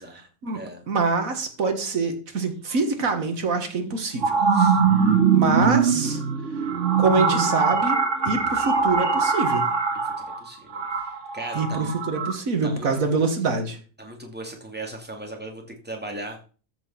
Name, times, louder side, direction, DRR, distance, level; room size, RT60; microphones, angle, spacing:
voice 1, 0.9-4.4 5.3-6.2 7.0-8.0 8.3-9.7 11.5-13.8, right 4 dB, 80° right, 6 dB, 2.1 m, -25 dB
sound 1, 3.0-3.1 3.8-12.3, right 5 dB, 65° right, 2.2 m, -22 dB
voice 2, 10.0-12.0 12.6-13.2 14.0-16.4, right 1 dB, 5° right, 1 dB, 2.5 m, -38 dB
14.0 x 5.4 x 5.8 m, 0.37 s
omnidirectional pair, 1.4 m